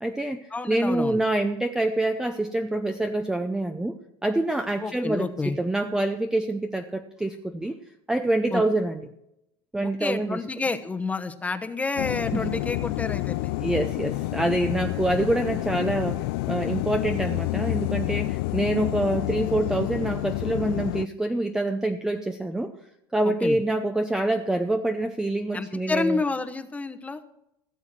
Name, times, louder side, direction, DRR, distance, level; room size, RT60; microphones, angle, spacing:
voice 1, 0.0-4.0 4.2-7.8 8.1-9.0 9.7-10.4 12.3-12.4 13.6-22.7 23.1-26.2, right 2 dB, 5° right, 7 dB, 0.6 m, -26 dB
voice 2, 0.5-1.2 4.8-5.6 8.5-8.6 9.8-13.5 23.2-23.6 25.5-27.2, left 3 dB, 10° left, 8 dB, 1.0 m, -29 dB
sound 1, 12.0-21.1, left 20 dB, 80° left, 0.4 m, -29 dB
16.5 x 7.2 x 6.1 m, 0.84 s
supercardioid pair, 135°, 12 cm